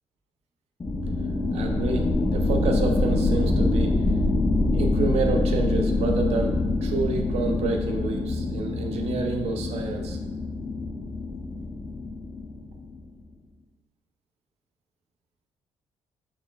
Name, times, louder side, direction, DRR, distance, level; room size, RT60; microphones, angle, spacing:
sound 1, 0.8-13.1, left 2 dB, 25° left, 0.5 m, -25 dB
voice 1, 1.5-4.0 4.7-10.2, right 4 dB, 75° right, 4 dB, 0.5 m, -29 dB
4.1 x 3.2 x 2.2 m, 1.2 s
cardioid pair, 95°, 11 cm